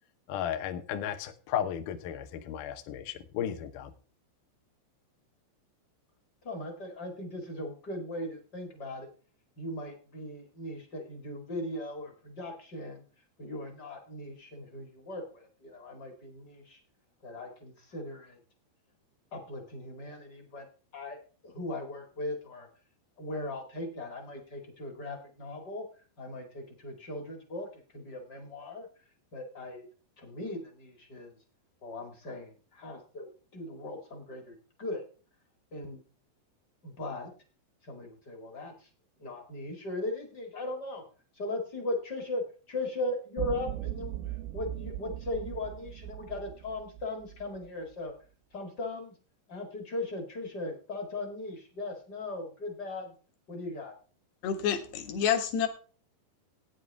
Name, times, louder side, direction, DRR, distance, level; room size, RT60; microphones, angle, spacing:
voice 1, 0.3-3.9, left 10 dB, 90° left, 6 dB, 1.8 m, -34 dB
voice 2, 6.4-9.1 9.6-13.0 13.4-16.8 17.2-18.4 19.3-20.7 20.9-21.2 21.4-22.7 23.2-25.9 26.2-28.9 29.3-29.8 30.2-31.4 31.8-35.0 35.7-36.0 36.8-37.3 37.8-38.9 39.2-41.0 41.3-44.2 44.5-48.1 48.5-49.1 49.5-53.1 53.5-53.9, left 2 dB, 45° left, 3 dB, 1.3 m, -38 dB
sound 1, 43.4-47.7, right 14 dB, 90° right, 3.1 m, -39 dB
voice 3, 54.4-55.7, left 8 dB, 70° left, 6 dB, 3.3 m, -28 dB
15.0 x 9.3 x 3.5 m, 0.37 s
omnidirectional pair, 5.3 m